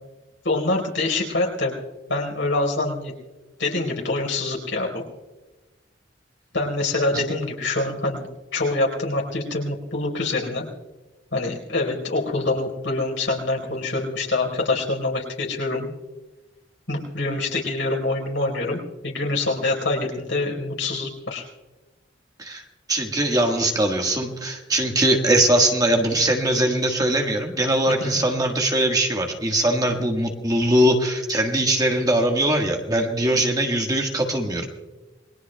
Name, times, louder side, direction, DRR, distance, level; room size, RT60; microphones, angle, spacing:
voice 1, 0.4-1.7 2.1-3.1 3.6-5.0 6.5-10.6 11.3-15.9 16.9-21.4 28.0-28.2, left 2 dB, 80° left, 1 dB, 4.4 m, -25 dB
voice 2, 22.9-34.7, right 1 dB, 20° right, 2 dB, 1.6 m, -21 dB
28.5 x 21.5 x 2.3 m, 1.1 s
head